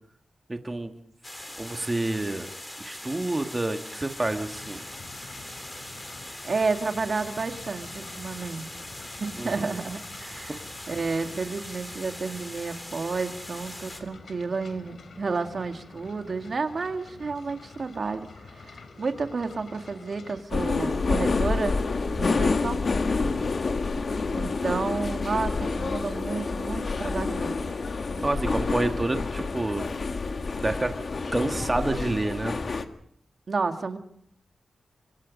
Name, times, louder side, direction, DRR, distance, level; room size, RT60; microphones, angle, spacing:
voice 1, 0.5-0.9 1.6-2.5 2.8-4.8 9.4-9.5 22.3-22.6 23.2-23.6 28.2-29.8 30.6-30.9 31.3-32.6, right 2 dB, 20° right, 5 dB, 1.7 m, -28 dB
sound 1, 1.2-14.0, left 1 dB, 15° left, 3.5 m, -41 dB
sound 2, 4.1-20.4, left 4 dB, 70° left, 3.8 m, -47 dB
voice 2, 6.4-8.7 9.2-21.8 22.1-22.8 24.3-27.7 28.1-28.3 33.5-34.0, right 4 dB, 55° right, 6 dB, 2.1 m, -31 dB
sound 3, 20.5-32.9, left 4 dB, 55° left, 1.6 m, -28 dB
26.0 x 25.0 x 5.3 m, 0.66 s
wide cardioid pair, 105°, 0 cm